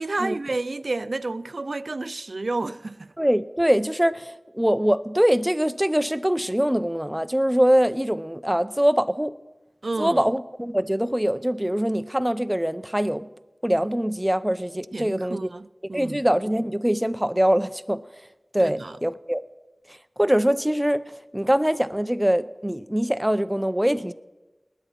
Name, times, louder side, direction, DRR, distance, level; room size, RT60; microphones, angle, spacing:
voice 1, 0.0-3.1 9.8-10.2 14.9-16.2 18.6-18.9, right 2 dB, 75° right, 0.4 m, -30 dB
voice 2, 3.2-9.3 10.0-13.3 13.6-15.5 15.9-18.0 18.5-19.4 19.9-21.0 21.3-24.1, equal, 10° right, 0.6 m, -23 dB
20.0 x 9.2 x 5.8 m
wide cardioid pair, 50°, 0 cm